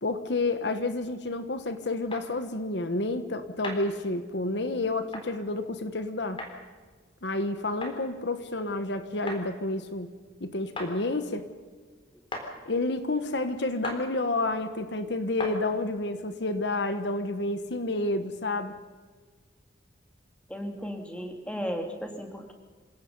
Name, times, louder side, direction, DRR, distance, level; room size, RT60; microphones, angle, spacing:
voice 1, 0.0-6.4 7.2-10.1 10.4-11.5 12.6-18.8, left 2 dB, 65° left, 10 dB, 1.3 m, -30 dB
sound 1, 2.1-2.3 3.6-3.8 5.1-5.3 6.4-6.5 7.8-8.0 9.3-9.4 10.8-10.9 12.3-12.5 13.8-14.0 15.4-15.6, left 2 dB, 30° left, 3.9 m, -36 dB
voice 2, 20.5-22.5, equal, 5° left, 4 dB, 2.7 m, -35 dB
28.0 x 17.5 x 5.5 m, 1.5 s
head